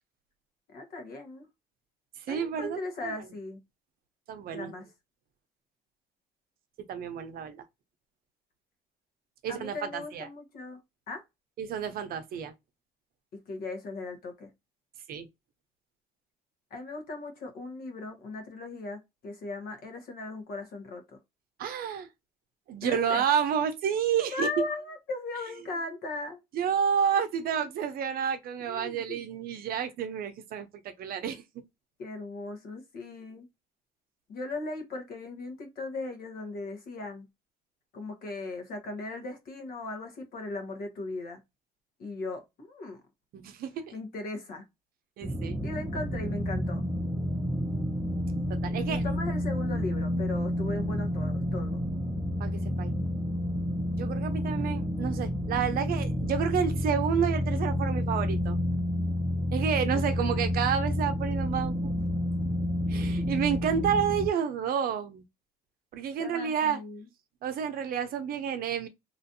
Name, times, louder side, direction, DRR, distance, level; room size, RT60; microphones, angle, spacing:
voice 1, 0.7-1.5 2.3-3.6 4.5-4.9 9.5-10.8 11.1-11.2 13.3-14.5 16.7-21.2 22.8-23.2 24.3-26.4 28.7-29.2 32.0-33.5 34.3-37.3 37.9-41.4 42.0-43.0 43.9-44.6 45.6-46.9 48.7-51.8 60.2-60.5 63.0-63.3 66.2-67.1, left 2 dB, 65° left, 1.2 m, -38 dB
voice 2, 2.3-3.1 4.3-4.7 6.9-7.6 9.4-10.3 11.6-12.5 15.1-15.3 21.6-22.1 22.7-24.5 26.5-31.4 43.3-43.8 45.2-45.6 48.5-49.0 52.4-52.9 54.0-58.6 59.5-61.9 62.9-65.2 65.9-66.8 67.4-68.9, right 8 dB, 60° right, 0.6 m, -30 dB
sound 1, 45.2-64.3, left 1 dB, 10° right, 0.5 m, -30 dB
3.0 x 2.5 x 2.6 m
cardioid pair, 110°, 17 cm